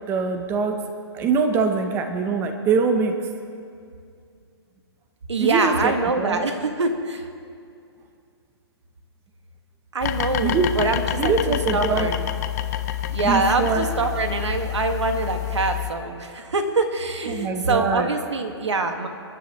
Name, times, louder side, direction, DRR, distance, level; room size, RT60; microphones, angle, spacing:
voice 1, 0.1-0.8 1.1-3.2 5.4-6.4 10.4-10.8 11.2-12.1 13.2-13.9 17.3-18.1, right 5 dB, 15° right, 6 dB, 0.7 m, -23 dB
voice 2, 5.3-7.2 9.9-12.2 13.1-19.1, right 3 dB, 90° right, 5 dB, 1.8 m, -24 dB
sound 1, 10.0-15.9, left 13 dB, 35° left, 0.7 m, -28 dB
29.5 x 10.0 x 3.1 m, 2.4 s
hypercardioid pair, 150°, 14 cm